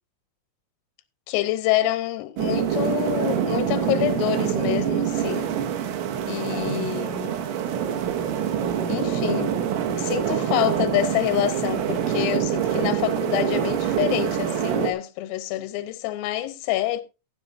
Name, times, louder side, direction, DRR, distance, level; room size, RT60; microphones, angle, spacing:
voice 1, 1.3-5.5 6.3-7.4 8.9-17.0, left 14 dB, 85° left, 3.6 m, -27 dB
sound 1, 2.4-14.9, right 9 dB, 80° right, 4.1 m, -25 dB
16.5 x 9.9 x 2.6 m
omnidirectional pair, 5.9 m